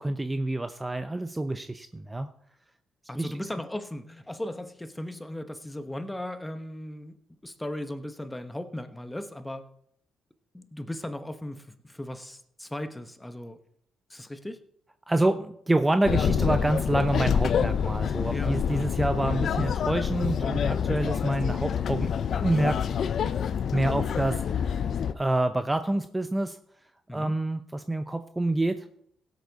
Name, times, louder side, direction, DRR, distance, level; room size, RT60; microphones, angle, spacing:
voice 1, 0.0-2.3 3.1-3.3 15.1-22.8 23.7-24.9 25.1-26.6 27.1-28.8, right 2 dB, 15° right, 9 dB, 0.7 m, -27 dB
voice 2, 3.1-7.2 7.4-9.6 10.5-13.6 14.1-14.6 18.3-18.9 27.1-27.4, left 1 dB, 10° left, 9 dB, 1.1 m, -37 dB
sound 1, 16.1-25.1, left 8 dB, 60° left, 0.6 m, -27 dB
17.0 x 8.3 x 4.1 m, 0.71 s
cardioid pair, 90°, 0 cm